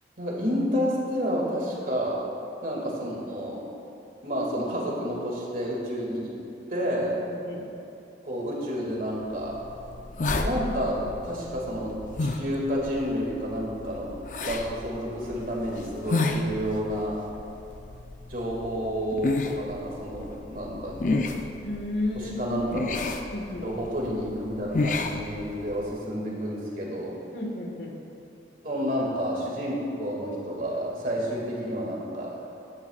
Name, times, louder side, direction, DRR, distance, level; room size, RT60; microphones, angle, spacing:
voice 1, 0.2-2.3 2.6-3.6 4.2-6.3 6.7-7.2 8.2-9.6 10.4-14.1 14.4-17.2 18.3-21.3 22.1-23.0 23.6-27.2 28.6-32.4, equal, 50° right, -3 dB, 2.2 m, -30 dB
voice 2, 7.3-7.6 21.6-22.5 23.3-23.6 27.3-27.9, left 2 dB, 65° left, 0 dB, 1.5 m, -32 dB
sound 1, 9.3-25.9, left 2 dB, 45° left, 0.5 m, -32 dB
16.0 x 11.0 x 2.4 m, 2.7 s
head